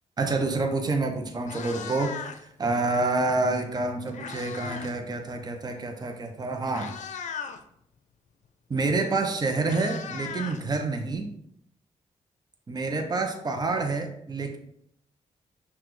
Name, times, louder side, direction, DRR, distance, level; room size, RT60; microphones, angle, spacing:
voice 1, 0.2-6.9 8.7-11.3 12.7-14.6, right 3 dB, 30° right, 4 dB, 0.7 m, -28 dB
Meow, 0.8-1.0 1.3-2.6 3.7-5.0 5.3-5.5 6.2-6.3 6.7-7.6 8.9-9.0 9.3-11.2, left 6 dB, 70° left, 0.5 m, -38 dB
5.8 x 2.3 x 3.1 m, 0.72 s
cardioid pair, 65°, 13 cm